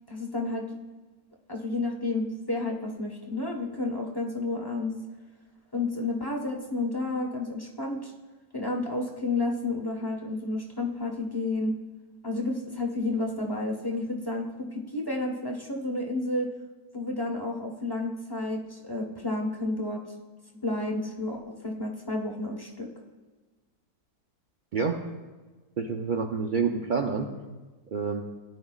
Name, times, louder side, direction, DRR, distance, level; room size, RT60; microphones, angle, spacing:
voice 1, 0.1-0.7 1.5-5.0 5.7-8.1 8.5-11.8 12.2-16.5 16.9-20.0 20.6-22.9, left 2 dB, 15° left, 0 dB, 1.1 m, -31 dB
voice 2, 25.8-27.3 27.9-28.2, right 5 dB, 80° right, 2 dB, 0.4 m, -28 dB
17.5 x 10.5 x 2.4 m, 1.3 s
omnidirectional pair, 1.7 m